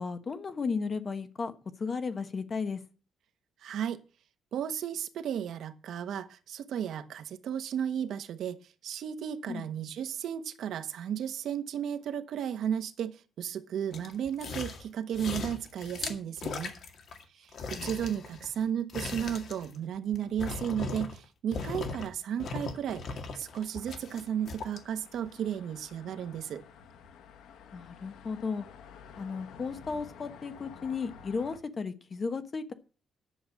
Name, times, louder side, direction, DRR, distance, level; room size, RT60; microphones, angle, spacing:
voice 1, 0.0-1.5 1.8-2.8 9.5-9.6 17.8-17.9 27.7-28.6 29.2-32.7, left 5 dB, 30° left, 1.1 m, -34 dB
voice 2, 3.6-4.0 4.5-16.7 17.3-23.0 23.3-26.6, right 9 dB, 60° right, 1.1 m, -34 dB
sound 1, 13.9-14.9 15.1-17.2 17.5-21.3 21.5-22.1 22.4-24.8 25.3-25.4, left 4 dB, 50° left, 2.0 m, -38 dB
sound 2, 23.4-31.6, left 6 dB, 80° left, 1.5 m, -52 dB
10.5 x 7.0 x 7.4 m
cardioid pair, 155°, 0 cm